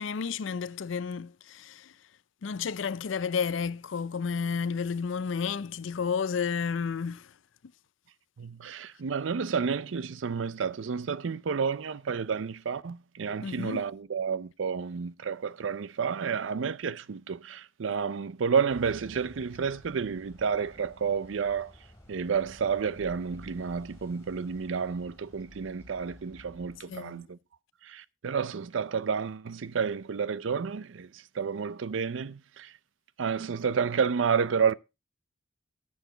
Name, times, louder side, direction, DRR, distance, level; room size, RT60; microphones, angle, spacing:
voice 1, 0.0-1.9 2.4-7.3 13.4-13.8 26.9-27.2, left 6 dB, 75° left, 0.5 m, -31 dB
voice 2, 8.4-21.7 22.1-27.4 27.8-32.7 33.2-34.7, right 6 dB, 75° right, 0.5 m, -30 dB
sound 1, 18.7-26.8, left 1 dB, 15° left, 3.1 m, -53 dB
13.5 x 7.2 x 3.8 m
head